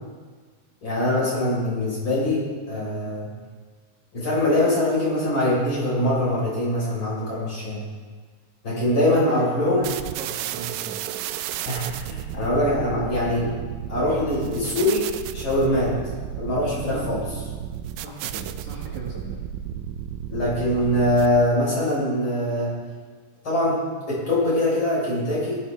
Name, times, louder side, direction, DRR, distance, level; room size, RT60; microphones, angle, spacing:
voice 1, 0.8-3.3 4.1-7.8 8.6-9.9 11.6-13.5 13.9-15.1 15.3-16.0 16.4-17.2 20.3-22.8 23.4-25.6, left 1 dB, 35° left, -6 dB, 5.2 m, -23 dB
voice 2, 9.1-9.5 9.8-11.0 16.7-17.0 18.0-19.4 20.7-20.8, right 4 dB, 60° right, -3 dB, 3.1 m, -37 dB
sound 1, 9.8-21.6, right 11 dB, 80° right, 2.1 m, -33 dB
18.5 x 11.0 x 3.4 m, 1.5 s
omnidirectional pair, 3.9 m